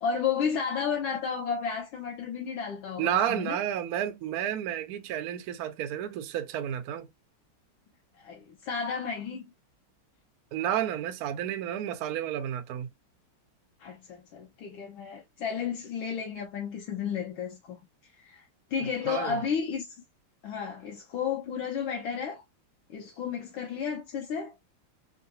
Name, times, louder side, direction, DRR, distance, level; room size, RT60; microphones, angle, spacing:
voice 1, 0.0-3.6 8.2-9.5 13.8-18.4 18.7-20.0 20.4-22.4 22.9-24.5, left 6 dB, 75° left, 1.4 m, -32 dB
voice 2, 3.0-7.1 10.5-12.9 18.8-19.4, right 10 dB, 85° right, 0.8 m, -31 dB
3.7 x 2.4 x 2.6 m
omnidirectional pair, 2.3 m